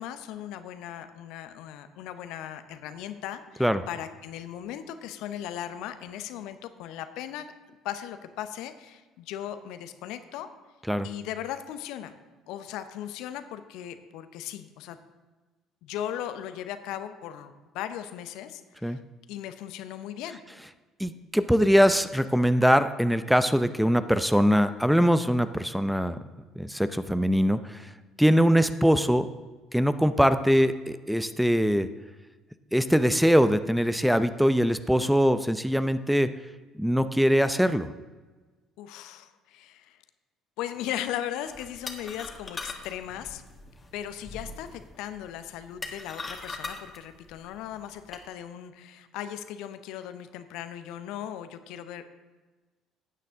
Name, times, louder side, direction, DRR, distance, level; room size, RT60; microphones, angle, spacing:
voice 1, 0.0-10.5 11.0-12.1 12.5-15.0 15.8-19.0 19.3-20.4 38.8-40.0 40.6-43.4 43.9-52.0, left 11 dB, 65° left, 10 dB, 0.8 m, -38 dB
voice 2, 21.0-26.2 26.6-27.9 28.2-29.3 29.7-31.9 32.7-36.3 36.8-37.9, equal, ahead, 12 dB, 0.7 m, -22 dB
sound 1, 41.5-48.2, left 3 dB, 25° left, 1.9 m, -41 dB
15.5 x 9.2 x 3.7 m, 1.3 s
figure-of-eight pair, 55°, 0 cm